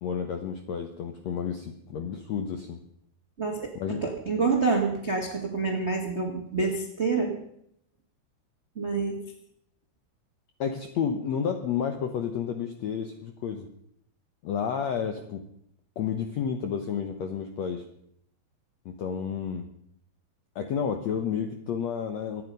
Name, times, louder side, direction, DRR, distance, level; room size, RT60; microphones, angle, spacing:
voice 1, 0.0-2.8 3.7-4.0 10.6-13.7 14.4-15.4 16.0-17.8 18.8-19.7 20.5-22.4, left 7 dB, 75° left, 6 dB, 1.5 m, -31 dB
voice 2, 3.4-7.4 8.7-9.2, right 4 dB, 70° right, 3 dB, 0.6 m, -27 dB
24.0 x 9.4 x 5.3 m, 0.71 s
omnidirectional pair, 4.5 m